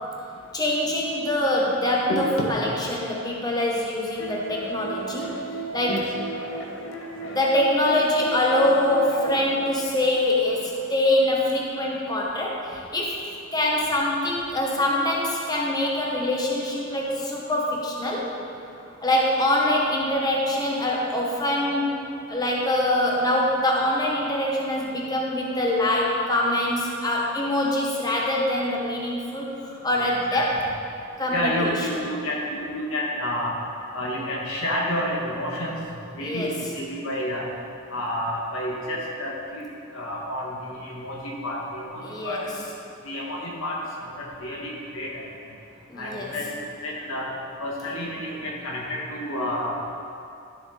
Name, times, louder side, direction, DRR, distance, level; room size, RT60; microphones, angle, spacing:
voice 1, 0.5-5.4 5.7-6.1 7.2-13.2 13.5-18.3 19.0-22.0 22.3-29.5 29.8-30.6 31.2-31.7 36.2-36.5 42.0-42.5 45.9-46.3, left 1 dB, 20° left, -3 dB, 1.1 m, -24 dB
voice 2, 2.1-2.5 4.4-4.5 5.9-6.0 30.0-30.5 31.3-33.5 33.9-35.8 36.1-37.4 37.9-39.6 39.9-41.2 41.4-42.5 43.0-45.2 46.0-47.3 47.6-49.7, left 1 dB, 85° left, -3 dB, 1.9 m, -30 dB
sound 1, 4.2-9.6, right 2 dB, 65° left, 0.9 m, -34 dB
12.5 x 7.3 x 4.0 m, 2.6 s
head